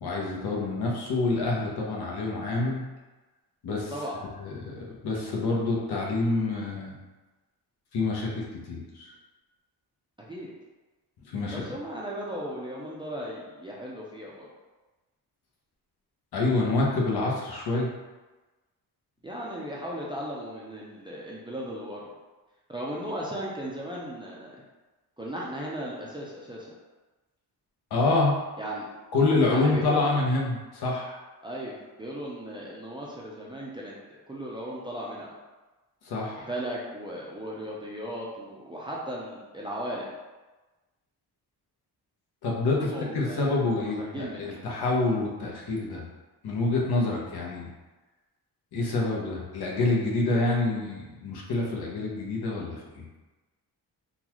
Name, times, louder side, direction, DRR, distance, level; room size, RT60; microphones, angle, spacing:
voice 1, 0.0-2.8 3.6-3.9 4.4-7.0 7.9-9.1 11.3-11.6 16.3-17.9 27.9-28.4 29.1-31.2 36.0-36.5 42.4-46.1 46.4-47.7 48.7-53.1, left 3 dB, 70° left, -3 dB, 0.9 m, -27 dB
voice 2, 11.5-14.5 19.2-22.1 22.7-24.5 25.2-26.7 28.6-28.9 29.5-30.2 31.4-33.9 34.3-35.3 36.5-40.1 42.8-44.6, right 1 dB, 15° right, -5 dB, 0.4 m, -36 dB
3.8 x 2.4 x 2.9 m, 1.2 s
wide cardioid pair, 145°, 40 cm